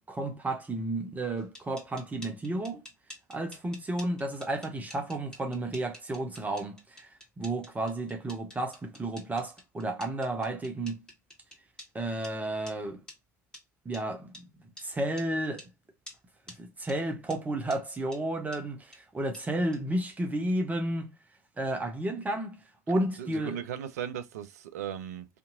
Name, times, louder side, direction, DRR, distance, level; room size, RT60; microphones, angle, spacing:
voice 1, 0.0-2.8 3.3-7.1 7.4-11.0 11.9-13.0 13.9-14.3 14.8-15.7 16.6-21.1 21.6-22.6 22.9-23.6, right 1 dB, 15° right, 0.7 m, -32 dB
sound 1, 1.4-11.9 12.2-12.3 12.7-12.8 13.1-13.2 13.5-13.6 13.9-14.0 14.3-14.4 14.8-14.9 15.2-15.3 15.6-15.7 16.1-16.2 16.5-16.6 16.9-17.0 17.3-17.4 17.7-17.8 18.1-18.2 18.5-18.6 18.9-19.0 19.3-19.4 19.7-19.8, left 1 dB, 10° left, 1.4 m, -48 dB
voice 2, 23.2-25.3, right 9 dB, 65° right, 0.4 m, -37 dB
2.7 x 2.6 x 2.5 m
figure-of-eight pair, 65°, 9 cm